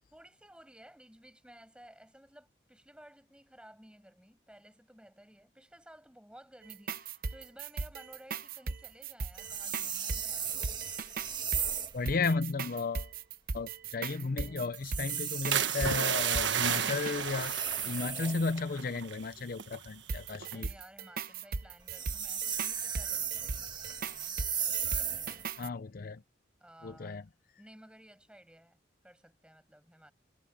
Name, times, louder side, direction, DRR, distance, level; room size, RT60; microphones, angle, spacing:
voice 1, 0.1-10.6 20.5-24.4 24.8-25.5 26.6-27.2 27.6-30.1, right 1 dB, 5° right, 6.6 m, -56 dB
sound 1, 6.6-17.2 20.1-25.7, right 4 dB, 50° right, 0.8 m, -38 dB
sound 2, 9.3-12.0 14.8-18.6 21.8-25.5, right 7 dB, 25° right, 1.6 m, -36 dB
voice 2, 11.9-13.1 13.5-17.5 17.8-20.7 25.6-26.2 26.8-27.2, left 4 dB, 50° left, 0.5 m, -34 dB
sound 3, 15.5-19.3 19.5-19.9 20.3-20.7, right 8 dB, 75° right, 1.3 m, -32 dB
head